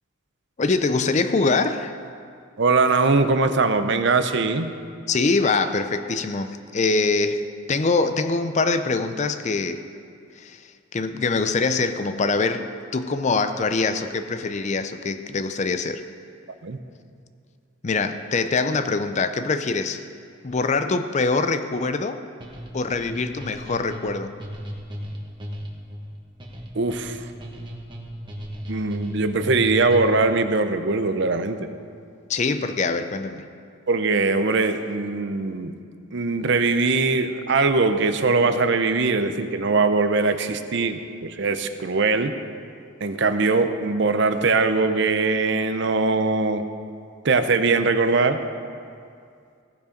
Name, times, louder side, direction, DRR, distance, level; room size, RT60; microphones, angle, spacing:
voice 1, 0.6-2.0 5.1-9.9 10.4-16.0 17.8-20.0 20.4-22.2 22.7-24.3 32.3-33.5, left 3 dB, 35° left, 10 dB, 0.5 m, -24 dB
voice 2, 2.6-4.7 16.6-16.8 26.7-27.2 28.7-31.6 33.9-35.8 36.1-42.3 43.0-46.6 47.2-48.4, right 3 dB, 60° right, 9 dB, 0.6 m, -21 dB
sound 1, 22.4-30.3, equal, 25° right, 1.3 m, -35 dB
16.5 x 7.2 x 5.2 m, 2.3 s
head